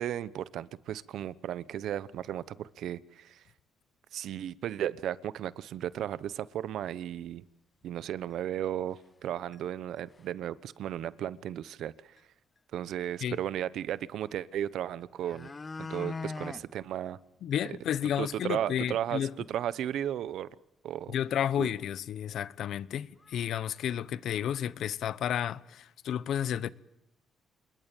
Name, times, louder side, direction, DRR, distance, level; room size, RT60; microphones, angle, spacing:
voice 1, 0.0-3.4 4.1-7.4 7.8-12.2 12.7-15.5 15.8-17.2 18.2-20.5 20.8-21.1 21.6-21.7, right 11 dB, 75° right, 1.0 m, -35 dB
sound 1, 6.2-6.3 6.8-6.9 7.2-7.3 8.3-8.4 9.0-9.3 9.5-9.6 10.0-10.4 11.8-11.9 12.2-12.3 14.6-14.7 15.0-16.7 17.1-17.2 17.5-17.6 18.0-18.1 18.4-18.5 21.3-21.4 21.8-21.9 22.7-22.8 23.2-23.4 23.7-24.5 24.8-24.9, left 4 dB, 30° left, 1.0 m, -41 dB
voice 2, 17.4-19.3 21.1-26.7, left 10 dB, 70° left, 1.0 m, -32 dB
27.5 x 21.5 x 9.1 m
cardioid pair, 90°, 0 cm